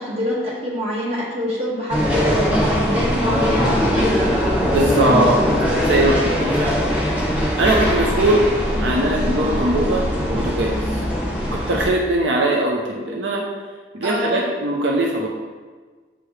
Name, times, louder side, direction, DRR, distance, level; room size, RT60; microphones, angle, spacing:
voice 1, 0.0-4.1 14.0-14.4, equal, 30° right, -6 dB, 1.8 m, -25 dB
sound 1, 1.9-11.9, equal, 10° right, 1.3 m, -21 dB
voice 2, 4.7-5.4 5.8-6.8 7.6-8.5 8.8-11.0 11.5-13.4 13.9-15.3, right 1 dB, 75° right, -1 dB, 0.7 m, -20 dB
7.8 x 4.8 x 3.2 m, 1.4 s
head